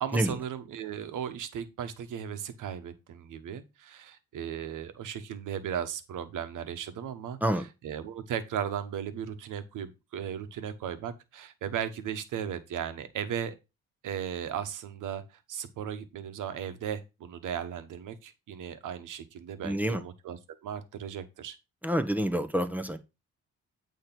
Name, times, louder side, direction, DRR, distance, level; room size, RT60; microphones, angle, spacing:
voice 1, 0.0-7.4 7.8-13.6 14.0-15.2 15.5-21.6, right 9 dB, 75° right, 1.2 m, -36 dB
voice 2, 19.6-20.0 21.8-23.0, equal, 5° right, 1.0 m, -28 dB
8.8 x 3.2 x 5.9 m
cardioid pair, 85°, 31 cm